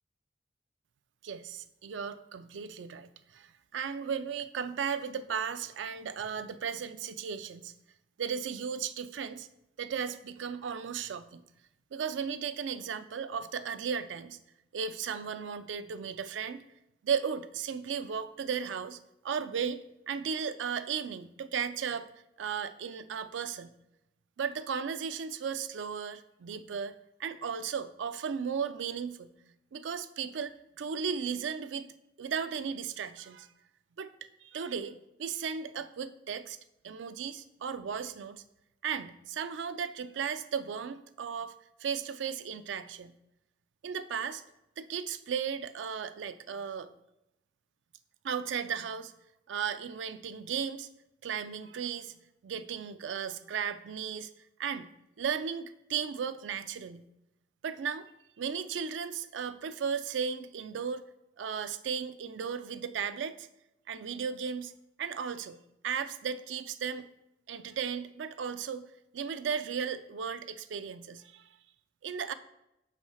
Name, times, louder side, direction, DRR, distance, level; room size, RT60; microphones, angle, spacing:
voice 1, 1.2-7.7 8.2-9.5 9.8-11.4 11.9-14.4 14.7-16.6 17.0-19.0 19.2-19.8 20.1-22.1 22.4-23.7 24.4-26.9 27.2-29.3 29.7-31.9 32.2-33.5 34.0-36.6 36.8-38.4 38.8-41.5 41.8-43.1 43.8-44.4 44.8-46.9 48.2-49.1 49.5-50.9 51.2-52.1 52.4-54.3 54.6-54.9 55.2-57.0 57.6-58.1 58.4-61.0 61.4-63.5 63.9-64.7 65.0-65.6 65.8-67.1 67.5-68.8 69.1-71.5 72.0-72.3, right 7 dB, 85° right, 11 dB, 0.4 m, -35 dB
6.2 x 4.2 x 4.8 m, 0.86 s
head